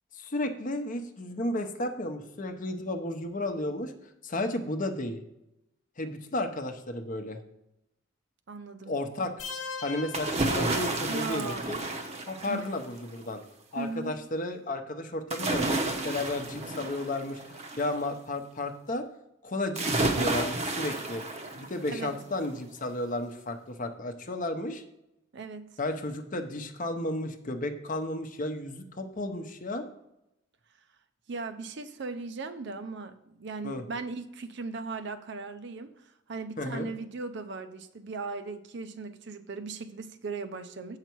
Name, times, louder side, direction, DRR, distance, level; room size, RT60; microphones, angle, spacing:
voice 1, 0.1-3.9 4.2-5.2 6.0-7.4 8.9-9.3 9.8-11.8 12.3-13.4 13.7-19.1 19.4-21.2 21.5-24.8 25.8-29.9 33.6-33.8 36.6-36.9, left 1 dB, 45° left, 7 dB, 0.8 m, -33 dB
voice 2, 8.5-8.9 11.1-11.7 12.5-12.6 13.7-14.2 21.9-22.1 25.3-25.7 31.3-35.9 36.3-41.0, right 4 dB, 60° right, 10 dB, 0.6 m, -38 dB
sound 1, 9.4-11.4, left 4 dB, 80° left, 0.8 m, -40 dB
sound 2, 10.1-12.9 15.3-17.9 19.7-22.0 22.4-22.5, right 2 dB, 35° right, 0.8 m, -31 dB
8.1 x 5.8 x 4.5 m, 0.85 s
head